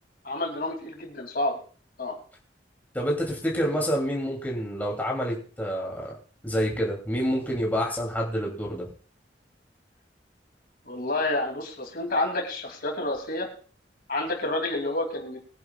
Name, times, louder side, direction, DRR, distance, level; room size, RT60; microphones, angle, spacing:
voice 1, 0.2-1.6 2.0-2.1 10.9-13.5 14.1-15.4, left 2 dB, 55° left, 3 dB, 2.7 m, -29 dB
voice 2, 2.9-6.2 6.4-8.9, equal, 10° left, -2 dB, 2.7 m, -28 dB
22.0 x 10.5 x 2.3 m, 0.41 s
head